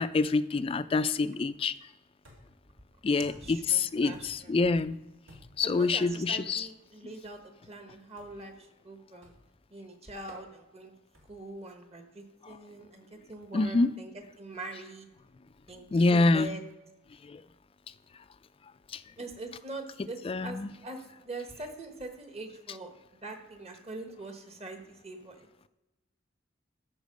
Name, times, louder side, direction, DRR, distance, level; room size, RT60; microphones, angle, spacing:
voice 1, 0.0-1.7 3.0-5.0 5.6-6.7 13.5-13.9 15.9-16.5 17.3-17.4 18.9-19.0 20.3-20.7, left 3 dB, 30° left, 14 dB, 0.3 m, -26 dB
sound 1, 2.2-2.7 3.2-3.7 4.1-4.6 5.3-5.7 6.4-6.6 8.2-8.5 9.2-9.6 10.3-10.5 11.1-11.5, equal, 85° right, 2.5 m, -54 dB
voice 2, 3.2-4.5 5.6-9.3 9.7-10.9 11.3-14.1 14.4-15.1 15.7-16.6 19.2-21.0 21.2-22.9 23.2-25.5, right 2 dB, 35° right, 5 dB, 1.2 m, -43 dB
13.0 x 4.5 x 5.3 m, 1.0 s
head